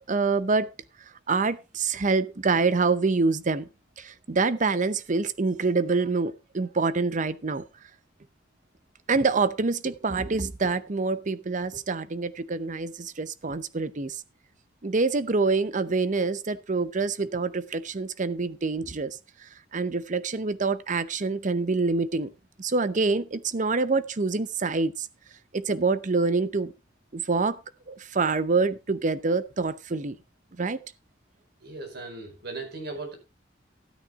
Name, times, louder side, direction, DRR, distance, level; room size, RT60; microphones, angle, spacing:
voice 1, 0.1-0.7 1.3-3.7 4.0-7.6 9.1-14.2 14.8-19.2 19.7-22.3 22.6-25.1 25.5-26.7 27.1-27.6 27.9-30.2 30.6-30.8, right 4 dB, 45° right, 0.7 m, -26 dB
voice 2, 31.6-33.1, right 3 dB, 60° right, 4.9 m, -37 dB
13.0 x 9.2 x 3.6 m
head